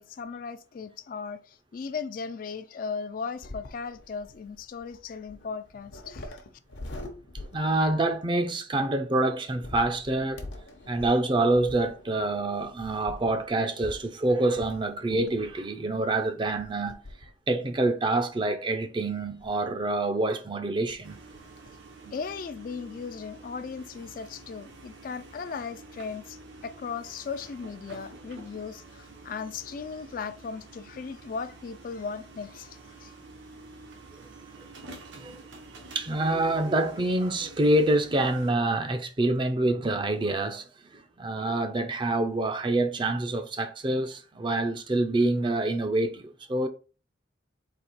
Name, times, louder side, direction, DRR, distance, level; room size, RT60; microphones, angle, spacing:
voice 1, 0.0-6.4 22.1-33.1, left 5 dB, 45° left, 0.3 m, -37 dB
sound 1, 3.4-8.2 9.5-15.7 16.5-17.4 17.8-17.9 19.0-19.7 20.6-20.7 20.9-21.0 21.3-21.7, left 1 dB, 80° left, 0.9 m, -44 dB
voice 2, 7.5-10.4 10.9-17.0 17.5-21.2 35.2-35.4 35.9-40.7 40.9-46.7, right 2 dB, 25° right, 0.4 m, -26 dB
sound 2, 21.0-38.5, right 2 dB, 80° right, 0.9 m, -48 dB
4.1 x 2.8 x 4.4 m
head